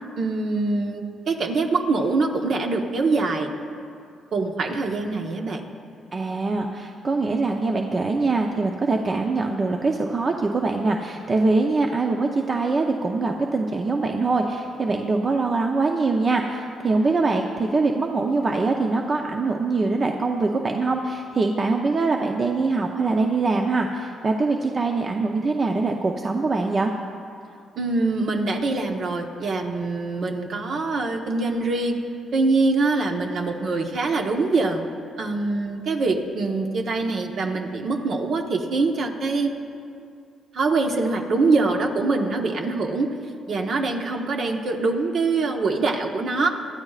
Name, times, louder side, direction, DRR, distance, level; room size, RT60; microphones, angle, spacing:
voice 1, 0.2-3.5 4.3-5.6 27.8-32.0 32.3-34.8 35.2-39.5 40.5-43.1 43.5-46.5, right 3 dB, 60° right, 3 dB, 1.2 m, -24 dB
voice 2, 6.1-26.9, right 3 dB, 35° right, 2 dB, 0.7 m, -23 dB
20.5 x 12.5 x 2.5 m, 2.4 s
cardioid pair, 90°, 0 cm